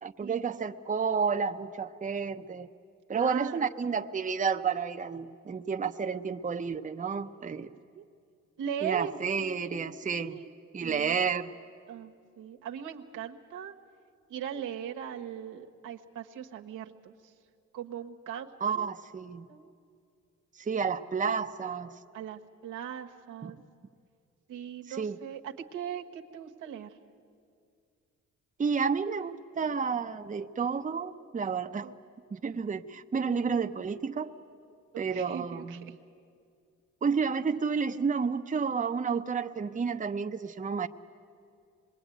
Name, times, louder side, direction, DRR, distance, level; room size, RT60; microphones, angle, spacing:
voice 1, 0.0-2.7 3.1-7.7 8.8-10.3 10.7-11.5 18.6-19.5 20.6-21.9 23.4-23.5 24.9-25.2 28.6-31.9 32.3-34.3 35.0-35.9 37.0-40.9, right 5 dB, 25° right, 7 dB, 0.8 m, -31 dB
voice 2, 3.1-3.7 7.9-8.0 8.6-10.5 10.8-11.2 11.9-13.7 14.3-17.3 17.7-18.5 18.7-18.9 19.5-19.7 22.1-23.6 24.5-27.0 31.8-32.0 34.9-35.9, right 8 dB, 90° right, 3 dB, 1.4 m, -39 dB
26.0 x 21.5 x 9.3 m, 2.4 s
cardioid pair, 90°, 30 cm